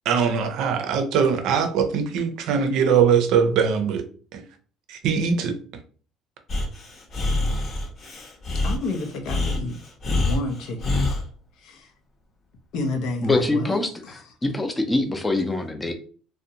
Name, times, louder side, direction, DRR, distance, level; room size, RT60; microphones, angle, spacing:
voice 1, 0.1-4.0 4.3-4.4 4.9-5.5, right 6 dB, 70° right, 0.5 m, -21 dB
Breathing, 6.5-11.2, left 2 dB, 45° left, 0.8 m, -26 dB
voice 2, 8.6-9.8 10.2-11.0 11.6-11.9 12.7-14.1, left 2 dB, 70° left, 0.6 m, -30 dB
voice 3, 13.2-15.9, left 2 dB, 15° left, 0.5 m, -24 dB
2.5 x 2.1 x 2.7 m
supercardioid pair, 95°, 0 cm